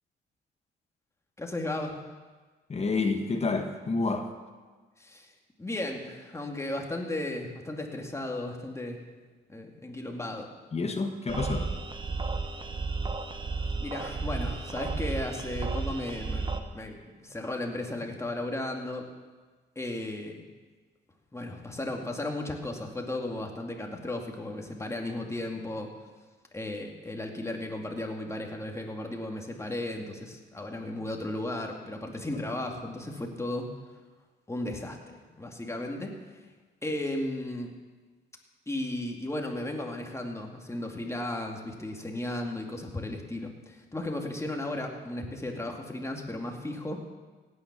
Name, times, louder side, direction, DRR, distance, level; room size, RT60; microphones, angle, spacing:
voice 1, 1.4-2.0 5.0-5.3 5.6-9.0 9.5-10.5 13.7-19.0 19.8-20.4 21.3-25.9 26.5-33.7 34.5-35.0 35.4-36.1 36.8-37.7 38.7-47.0, left 1 dB, 15° left, 2 dB, 2.3 m, -35 dB
voice 2, 2.7-4.3 10.7-11.7, left 3 dB, 30° left, 5 dB, 1.5 m, -29 dB
sound 1, 11.3-16.6, right 4 dB, 25° right, 1.2 m, -33 dB
16.5 x 9.5 x 6.1 m, 1.4 s
cardioid pair, 90°, 20 cm